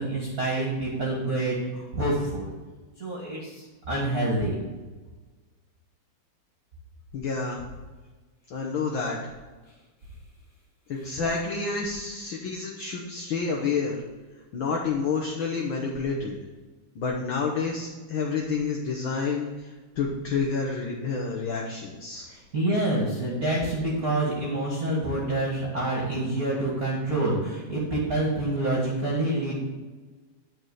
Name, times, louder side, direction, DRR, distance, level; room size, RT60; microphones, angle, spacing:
voice 1, 0.0-2.5 3.0-4.6 22.3-29.6, right 1 dB, 30° right, -4 dB, 2.2 m, -27 dB
voice 2, 7.1-7.6 8.5-9.2 10.9-14.0 14.5-16.4 16.9-19.7 20.0-22.3, left 4 dB, 55° left, 0 dB, 1.5 m, -29 dB
9.9 x 4.9 x 7.8 m, 1.3 s
omnidirectional pair, 3.3 m